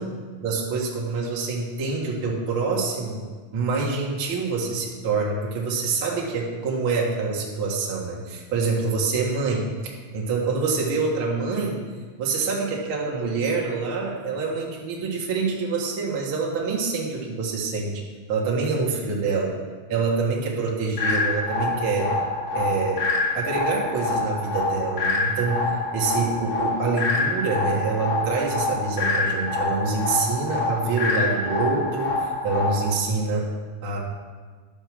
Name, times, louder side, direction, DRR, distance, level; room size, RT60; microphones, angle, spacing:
voice 1, 0.4-3.2 3.5-11.8 12.2-18.0 18.3-19.5 19.9-22.1 22.5-23.0 23.3-25.6 25.9-33.5 33.8-34.0, right 4 dB, 45° right, -3 dB, 1.9 m, -26 dB
sound 1, 21.0-33.0, left 3 dB, 40° left, 2.6 m, -26 dB
11.0 x 6.7 x 6.2 m, 1.5 s
omnidirectional pair, 4.4 m